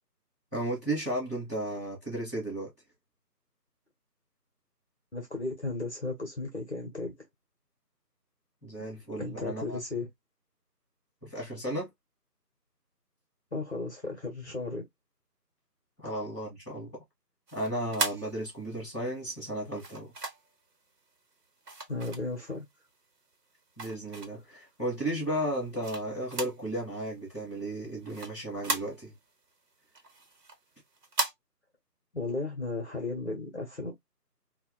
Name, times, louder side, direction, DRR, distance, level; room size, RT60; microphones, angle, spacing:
voice 1, 0.5-2.7 8.6-9.8 11.2-11.9 16.0-16.9 17.5-20.1 23.8-29.1, right 1 dB, 10° right, 1.3 m, -34 dB
voice 2, 5.1-7.1 9.2-10.1 13.5-14.8 21.9-22.7 32.1-33.9, left 3 dB, 45° left, 0.9 m, -35 dB
sound 1, 17.5-18.9 19.7-20.6 21.6-22.7 23.2-24.6 25.1-26.7 27.0-27.1 27.4-29.3 29.7-31.3, right 3 dB, 70° right, 0.9 m, -36 dB
3.2 x 2.2 x 2.2 m
figure-of-eight pair, 165°, 49 cm